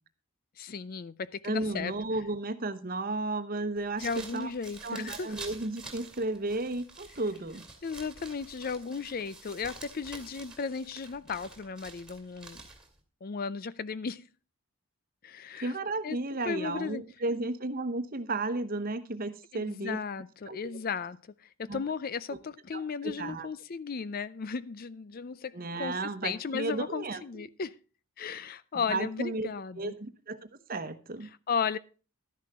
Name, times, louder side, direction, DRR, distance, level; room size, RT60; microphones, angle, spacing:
voice 1, 0.6-1.9 4.0-5.4 7.8-12.6 13.2-14.3 15.2-15.8 16.0-16.2 16.4-17.0 19.5-27.8 28.2-30.0 31.5-31.8, left 5 dB, 40° left, 0.4 m, -35 dB
voice 2, 1.4-4.5 4.8-7.7 15.6-20.0 20.5-20.8 21.7-21.8 22.7-23.5 25.5-27.5 28.7-29.5 29.8-30.4 30.7-31.3, right 2 dB, 40° right, 1.0 m, -33 dB
sound 1, 3.8-13.0, right 3 dB, 5° right, 2.5 m, -48 dB
12.5 x 10.5 x 3.6 m
head